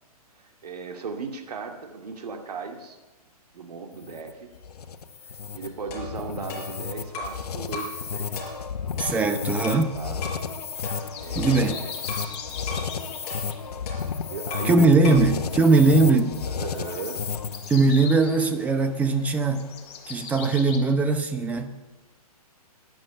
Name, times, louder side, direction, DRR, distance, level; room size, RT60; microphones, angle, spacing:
voice 1, 0.3-3.0 3.5-4.5 5.2-8.5 9.9-10.3 11.2-11.9 14.2-15.1 15.8-16.1 16.5-17.2, right 5 dB, 80° right, 5 dB, 2.3 m, -37 dB
sound 1, 3.9-17.8, left 6 dB, 80° left, 1.3 m, -32 dB
sound 2, 5.9-7.4 7.7-8.0 8.4-9.9 10.2-10.5 10.8-12.3 12.7-12.9 13.3-14.8 15.0-15.3, left 2 dB, 25° left, 5.3 m, -37 dB
voice 2, 9.0-9.9 11.4-11.8 14.6-16.3 17.7-19.6 20.1-21.7, right 3 dB, 5° right, 8 dB, 0.8 m, -20 dB
sound 3, 10.7-20.8, left 6 dB, 45° left, 2.9 m, -42 dB
12.5 x 10.5 x 9.0 m, 1.1 s
hypercardioid pair, 155°, 20 cm